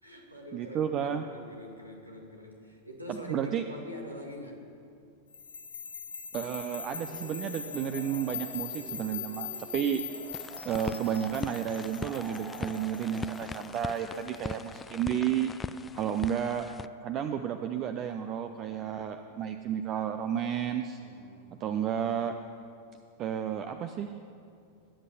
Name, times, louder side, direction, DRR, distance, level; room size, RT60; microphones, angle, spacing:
voice 1, 0.0-4.6 15.7-16.5 21.0-21.8, left 1 dB, 85° right, 1 dB, 2.3 m, -45 dB
voice 2, 0.5-1.2 3.3-3.6 6.3-10.0 10.6-15.5 15.9-16.7 17.0-21.0 21.6-22.3 23.2-24.1, right 9 dB, 35° right, 8 dB, 0.6 m, -32 dB
sound 1, 5.3-14.4, left 7 dB, 70° left, 1.8 m, -42 dB
sound 2, 6.9-13.5, right 1 dB, 20° right, 2.4 m, -48 dB
sound 3, 10.3-16.9, left 5 dB, 15° left, 0.4 m, -41 dB
21.5 x 8.3 x 6.9 m, 2.5 s
figure-of-eight pair, 90°, 0 cm